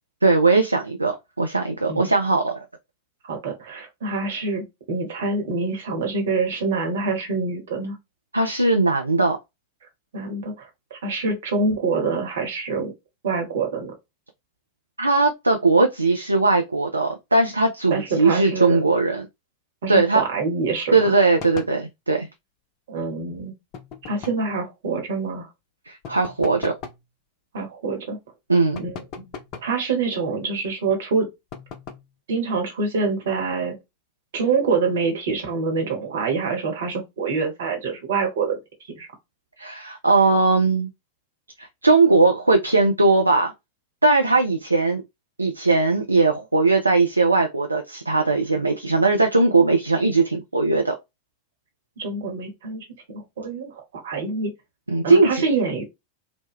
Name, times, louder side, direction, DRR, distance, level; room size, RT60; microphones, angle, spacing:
voice 1, 0.2-2.7 8.3-9.4 15.0-19.3 19.9-20.2 20.9-22.3 25.9-26.7 28.5-28.8 39.6-40.9 41.6-43.5 44.0-45.0 45.4-51.0 54.9-55.5, right 3 dB, 80° right, 0.3 m, -19 dB
voice 2, 3.2-7.9 10.1-12.9 13.2-13.9 17.9-18.8 19.8-20.9 22.9-23.5 24.1-25.5 27.5-28.2 28.8-28.9 29.2-29.3 29.6-31.3 32.3-33.8 34.3-38.6 39.0-39.1 52.0-52.8 53.1-54.5 55.0-55.8, right 4 dB, 60° right, 1.0 m, -26 dB
sound 1, 21.4-21.8 23.7-24.5 26.0-27.1 28.7-29.8 31.5-32.1, left 6 dB, 40° left, 0.5 m, -39 dB
2.9 x 2.1 x 3.4 m
figure-of-eight pair, 90°, 0 cm